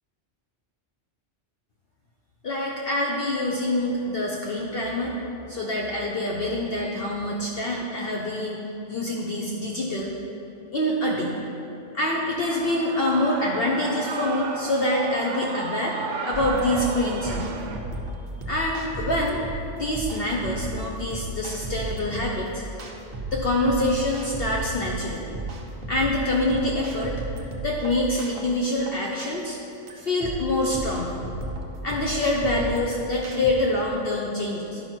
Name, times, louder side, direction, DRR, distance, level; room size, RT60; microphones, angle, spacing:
voice 1, 2.4-5.1 5.5-10.1 10.7-11.4 11.9-16.0 16.2-17.5 18.5-19.4 19.8-22.6 23.3-25.2 25.9-27.2 27.6-29.6 30.0-31.2 31.8-34.8, left 1 dB, 55° left, -2 dB, 0.9 m, -26 dB
Shout / Cheering, 12.4-17.8, right 5 dB, 80° right, 1.0 m, -33 dB
sound 1, 16.3-33.5, right 2 dB, 50° right, 1.0 m, -34 dB
11.0 x 5.4 x 4.4 m, 3.0 s
omnidirectional pair, 1.2 m